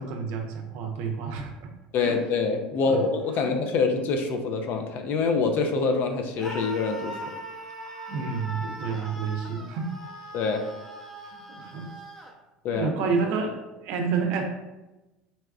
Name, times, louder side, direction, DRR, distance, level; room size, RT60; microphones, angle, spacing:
voice 1, 0.0-1.7 2.0-2.2 2.9-3.0 3.3-3.5 8.1-10.0 11.2-11.9 12.7-13.6 13.8-14.4, right 5 dB, 60° right, 3 dB, 0.5 m, -29 dB
voice 2, 1.9-7.1 10.3-10.6 12.6-12.9, left 4 dB, 50° left, 5 dB, 0.4 m, -25 dB
Screaming, 6.4-12.3, equal, 10° left, 0.7 m, -40 dB
4.0 x 2.3 x 2.3 m, 1.0 s
hypercardioid pair, 75°, 4 cm